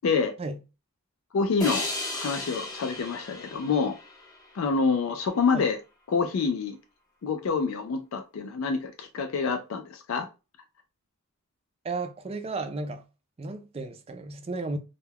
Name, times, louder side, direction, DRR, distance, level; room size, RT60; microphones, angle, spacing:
voice 1, 0.0-0.3 1.3-1.9 2.1-4.0 4.5-5.8 6.1-6.8 7.2-10.3, left 5 dB, 70° left, 0.4 m, -27 dB
sound 1, 1.6-4.9, left 2 dB, 20° left, 0.6 m, -35 dB
voice 2, 11.8-13.0 13.4-14.8, right 3 dB, 30° right, 0.3 m, -33 dB
2.2 x 2.2 x 3.3 m
head